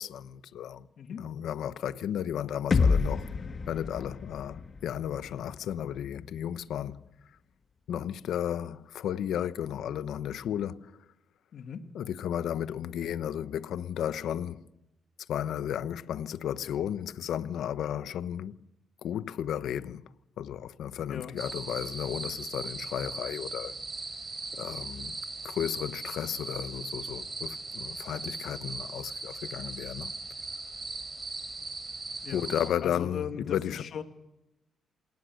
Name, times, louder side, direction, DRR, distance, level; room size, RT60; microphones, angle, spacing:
voice 1, 0.0-0.9 1.2-3.3 3.7-7.0 7.9-10.9 11.9-14.7 15.3-18.6 19.0-20.1 20.4-23.7 24.5-25.2 25.4-30.1 32.3-33.8, left 10 dB, 80° left, 1.0 m, -34 dB
sound 1, 2.7-6.6, left 4 dB, 40° left, 1.6 m, -30 dB
voice 2, 11.5-11.8 21.1-21.4 32.2-32.5 32.8-34.0, left 7 dB, 60° left, 2.5 m, -38 dB
sound 2, 21.4-32.7, right 3 dB, 25° right, 7.7 m, -39 dB
28.0 x 18.0 x 6.5 m
cardioid pair, 115°, 0 cm